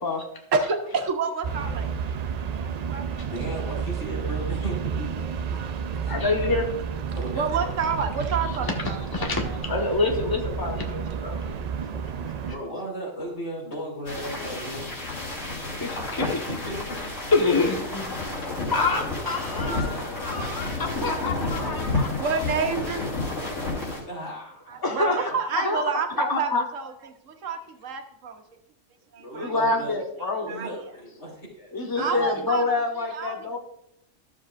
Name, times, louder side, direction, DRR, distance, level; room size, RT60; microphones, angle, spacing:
voice 1, 0.5-1.9 2.2-3.1 7.3-9.6 21.1-21.3 22.1-23.0 23.3-23.4 24.7-28.4 29.1-29.5 30.5-30.7 32.0-32.8 33.1-33.6, right 5 dB, 90° right, 5 dB, 1.4 m, -29 dB
sound 1, 1.4-12.5, right 7 dB, 70° right, 0.4 m, -31 dB
voice 2, 3.0-5.1 5.6-5.7 6.0-6.1 7.1-7.7 12.4-14.9 15.4-15.9 16.6-17.0 18.6-18.7 19.7-20.0 21.0-21.7 23.1-23.2 24.1-24.8 29.2-30.0 30.3-32.2, equal, 60° left, -3 dB, 3.3 m, -36 dB
voice 3, 6.1-6.6 9.1-11.5 15.8-16.5 17.3-18.3 18.7-22.3 24.8-25.3 25.6-25.8 26.3-26.6 29.3-30.6 31.7-33.6, left 3 dB, 20° left, 1 dB, 1.2 m, -26 dB
sound 2, 14.1-24.0, left 2 dB, 80° left, 3.1 m, -31 dB
13.0 x 7.2 x 2.5 m, 0.77 s
omnidirectional pair, 1.3 m